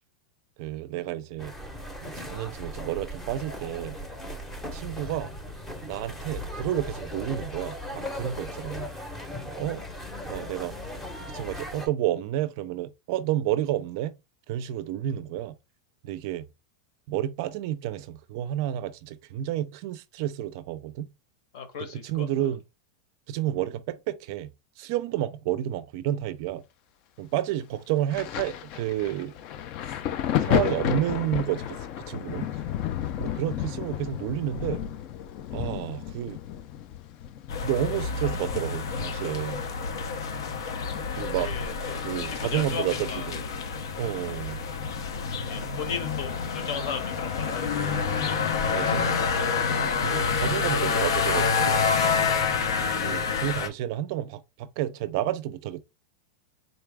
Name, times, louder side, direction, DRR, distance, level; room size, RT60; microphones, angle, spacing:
voice 1, 0.6-1.5 2.0-4.0 4.6-5.3 5.8-8.9 9.6-9.8 10.3-10.7 11.3-14.1 14.5-15.5 16.0-16.4 17.1-21.1 22.0-22.6 23.3-24.5 24.8-26.6 27.2-29.3 30.3-32.5 33.2-34.8 35.5-36.4 37.6-39.6 41.2-41.5 42.0-43.4 44.0-44.6 48.6-49.2 50.0-51.8 52.8-55.8, right 12 dB, 50° right, 0.4 m, -30 dB
sound 1, 1.4-11.9, left 1 dB, 10° left, 0.7 m, -38 dB
voice 2, 21.5-22.3 41.4-43.3 45.4-48.0, left 6 dB, 60° left, 1.0 m, -36 dB
Thunder, 28.1-41.5 41.7-43.1 43.9-44.1, left 10 dB, 35° left, 0.3 m, -32 dB
sound 2, 37.5-53.7, left 5 dB, 85° left, 0.6 m, -28 dB
3.9 x 2.3 x 3.3 m
supercardioid pair, 160°, 2 cm